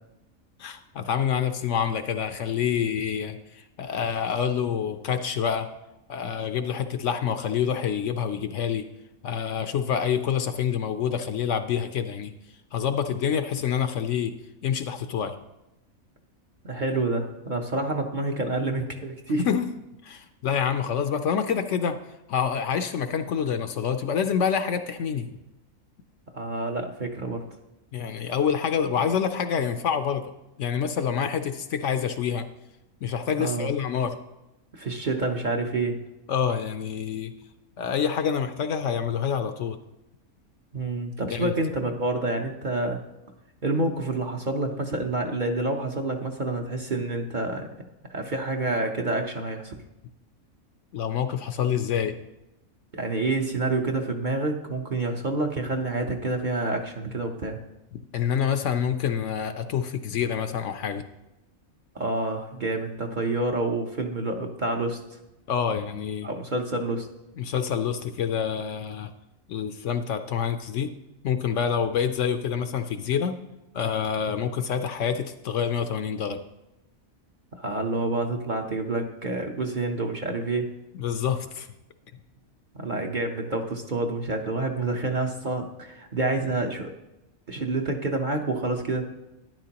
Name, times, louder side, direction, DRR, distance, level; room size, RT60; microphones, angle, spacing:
voice 1, 0.6-5.7 6.1-8.8 9.2-12.3 12.7-14.3 14.6-15.3 19.4-19.7 20.0-22.0 22.3-25.4 27.9-30.2 30.6-32.4 33.0-34.1 36.3-37.3 37.8-39.8 41.3-41.5 50.9-52.1 57.9-61.0 65.5-66.3 67.4-69.1 69.5-70.9 71.2-73.4 73.7-76.4 80.9-81.7, left 7 dB, 65° left, 9 dB, 0.9 m, -27 dB
voice 2, 16.6-19.5 26.3-27.4 33.4-33.7 34.7-36.0 40.7-43.0 43.6-47.7 48.1-49.7 52.9-57.6 61.9-65.0 66.2-67.1 77.5-80.7 82.8-86.9 87.5-89.0, right 2 dB, 40° right, 2 dB, 0.8 m, -28 dB
12.0 x 10.5 x 2.9 m, 0.94 s
omnidirectional pair, 1.5 m